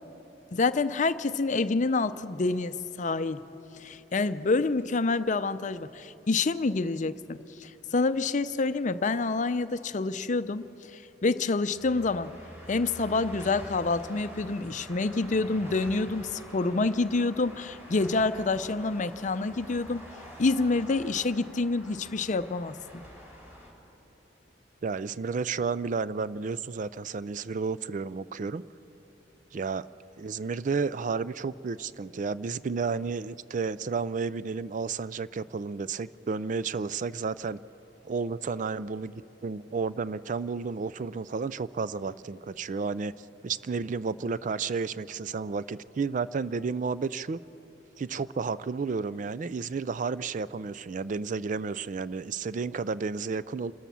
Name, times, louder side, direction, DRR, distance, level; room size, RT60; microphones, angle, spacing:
voice 1, 0.5-3.4 3.8-12.3 12.7-20.0 20.4-23.0, left 3 dB, 45° left, 13 dB, 0.6 m, -27 dB
sound 1, 11.7-23.7, equal, 15° right, 4.0 m, -46 dB
voice 2, 24.8-28.6 29.5-29.9 30.2-37.6 38.0-43.1 43.4-47.4 48.0-53.7, right 5 dB, 45° right, 17 dB, 0.4 m, -32 dB
28.0 x 13.5 x 7.1 m, 3.0 s
head